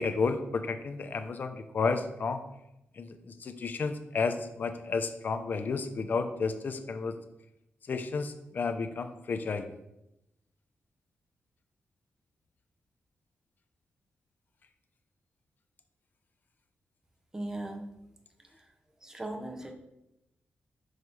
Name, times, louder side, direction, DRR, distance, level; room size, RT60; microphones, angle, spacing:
voice 1, 0.0-2.4 3.0-7.1 7.9-9.6, left 4 dB, 50° left, 8 dB, 0.6 m, -32 dB
voice 2, 17.3-17.9 18.5-18.7 19.0-19.7, right 1 dB, 15° right, 4 dB, 0.8 m, -38 dB
6.4 x 3.1 x 5.3 m, 0.89 s
wide cardioid pair, 125°, 4 cm